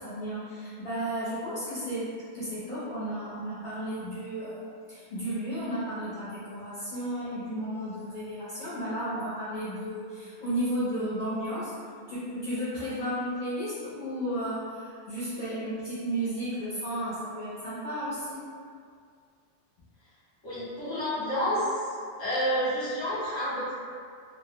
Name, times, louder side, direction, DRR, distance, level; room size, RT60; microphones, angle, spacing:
voice 1, 0.0-11.7 12.1-18.4, equal, 55° left, -10 dB, 0.7 m, -33 dB
voice 2, 20.4-21.8 22.2-23.7, equal, 25° left, -11 dB, 0.9 m, -29 dB
2.2 x 2.0 x 2.9 m, 2.2 s
omnidirectional pair, 1.1 m